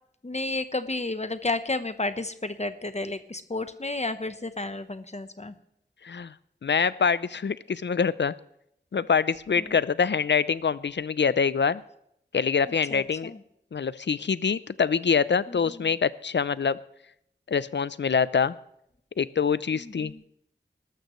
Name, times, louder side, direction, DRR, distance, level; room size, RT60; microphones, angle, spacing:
voice 1, 0.2-5.5 9.6-9.8 12.6-13.4 15.5-16.0 19.7-20.2, left 2 dB, 35° left, 10 dB, 0.9 m, -32 dB
voice 2, 6.6-8.3 8.9-11.8 12.3-13.3 13.7-16.8 17.5-18.5 19.2-20.1, left 6 dB, 70° left, 17 dB, 0.5 m, -25 dB
19.5 x 13.5 x 3.1 m, 0.75 s
wide cardioid pair, 50°, 19 cm